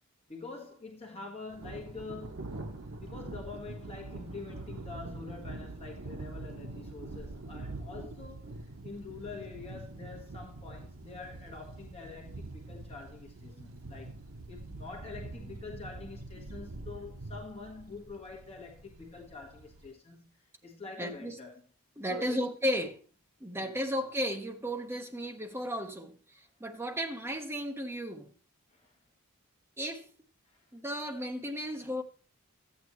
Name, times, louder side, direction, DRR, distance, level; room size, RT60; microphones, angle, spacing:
voice 1, 0.3-2.5 2.9-8.6 8.8-14.2 14.5-21.6 22.1-22.5 23.5-23.7 28.7-29.0 30.4-30.7, left 4 dB, 25° left, 1.6 m, -46 dB
Thunder, 1.5-19.9, right 2 dB, 70° right, 1.0 m, -44 dB
voice 2, 21.0-21.3 22.0-23.0 23.4-26.1 26.6-28.3 29.8-30.1 30.7-32.0, equal, 10° right, 1.2 m, -34 dB
13.5 x 9.0 x 3.1 m
head